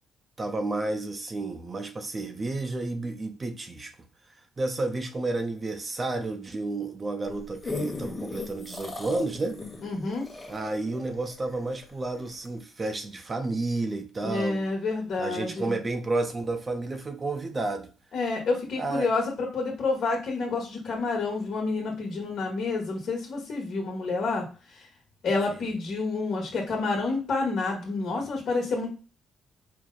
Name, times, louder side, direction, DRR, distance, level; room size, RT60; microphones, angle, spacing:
voice 1, 0.4-3.9 4.6-9.6 10.5-14.7 15.2-17.9 18.8-19.1 25.5-25.6, right 2 dB, 30° right, 0.7 m, -31 dB
sound 1, 7.3-11.9 12.5-12.6, left 2 dB, 20° left, 1.3 m, -36 dB
voice 2, 9.8-10.3 14.2-15.7 18.1-24.4 24.7-24.9 25.2-28.9, left 3 dB, 60° left, 1.3 m, -29 dB
4.6 x 2.2 x 3.8 m
cardioid pair, 90°, 0 cm